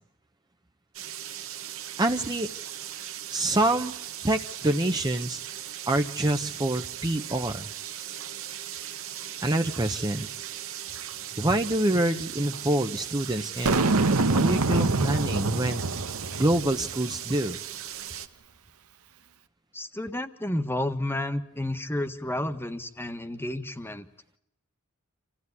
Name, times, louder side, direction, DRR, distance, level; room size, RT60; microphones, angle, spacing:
sound 1, 0.9-18.3, right 11 dB, 65° right, 1.5 m, -38 dB
voice 1, 2.0-2.5 3.3-3.9 4.2-5.4 5.9-7.6 9.4-10.4 11.4-13.8 14.3-15.8 16.4-17.6, right 1 dB, 20° right, 6 dB, 0.9 m, -26 dB
Boom, 13.7-17.0, right 3 dB, 85° right, 1.3 m, -25 dB
voice 2, 19.7-24.1, left 1 dB, 10° left, 9 dB, 1.5 m, -31 dB
27.5 x 16.0 x 9.7 m, 0.83 s
head